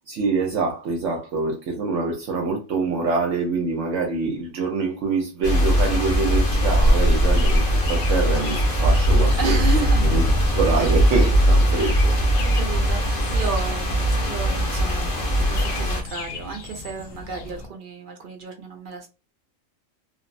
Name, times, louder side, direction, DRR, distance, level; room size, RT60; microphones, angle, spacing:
voice 1, 0.1-9.6 10.0-10.3 10.5-12.1, right 4 dB, 70° right, 0.9 m, -25 dB
sound 1, 5.4-16.0, equal, 50° left, 0.8 m, -20 dB
sound 2, 6.5-17.7, equal, 85° left, 1.0 m, -29 dB
voice 2, 9.4-10.1 10.8-11.0 11.7-12.0 12.5-19.1, right 5 dB, 55° right, 0.6 m, -32 dB
3.1 x 2.0 x 2.5 m
omnidirectional pair, 1.4 m